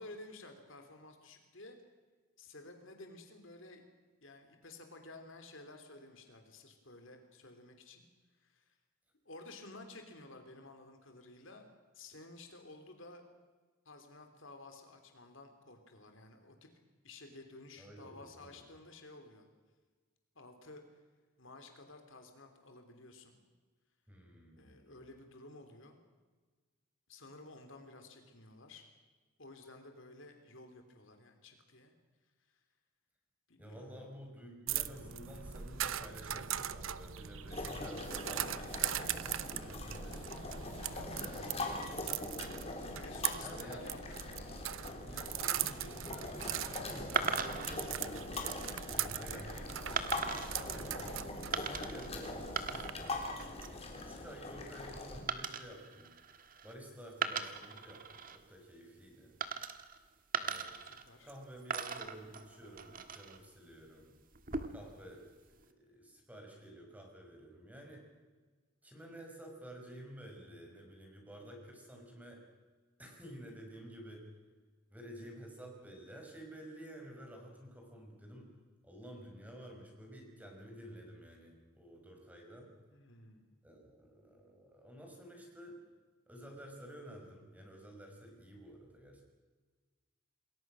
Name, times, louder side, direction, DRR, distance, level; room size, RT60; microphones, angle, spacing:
voice 1, 0.0-1.8 2.4-3.8 4.2-8.0 8.4-8.7 9.2-11.7 11.9-13.2 13.8-16.7 17.0-19.5 20.3-20.8 21.4-23.4 24.6-26.0 27.1-28.9 29.4-31.9 33.5-34.0 40.9-41.3 43.0-44.2 50.6-50.9 60.8-61.3 82.9-83.5, left 2 dB, 60° left, 5 dB, 3.2 m, -53 dB
voice 2, 17.8-18.6 24.1-25.0 33.6-40.6 41.1-42.6 43.4-43.9 45.0-48.3 48.8-51.2 51.9-53.2 53.9-56.1 56.6-59.3 60.4-60.7 61.2-64.1 64.7-68.0 68.8-72.4 73.0-74.3 74.9-78.6 78.8-82.7 83.6-85.8 86.3-89.2, right 1 dB, 5° right, 1 dB, 5.5 m, -52 dB
sound 1, 34.7-52.9, right 11 dB, 65° right, 0.9 m, -40 dB
sound 2, 37.5-55.2, left 2 dB, 30° left, 3.6 m, -42 dB
sound 3, 47.2-47.8 48.5-48.8 50.0-50.6 51.5-52.1 52.4-53.1 53.4-53.8 55.3-56.7 57.1-58.4 59.4-60.0 60.3-61.4 61.7-63.4 64.3-64.9, right 6 dB, 40° right, 1.6 m, -38 dB
28.0 x 21.0 x 6.3 m, 1.4 s
head